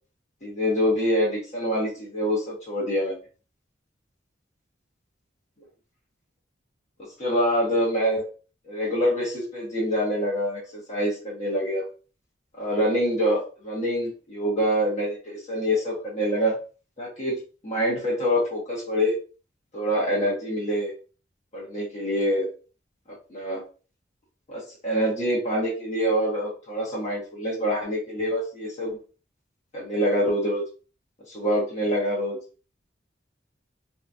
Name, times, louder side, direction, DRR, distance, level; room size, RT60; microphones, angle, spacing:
voice 1, 0.4-3.2 7.2-8.2 8.7-11.8 12.6-16.6 17.0-19.1 19.7-20.9 21.5-22.5 23.3-23.6 24.5-29.0 29.7-30.6 31.3-32.4, equal, 35° left, -6 dB, 1.1 m, -25 dB
3.8 x 2.8 x 2.4 m, 0.36 s
head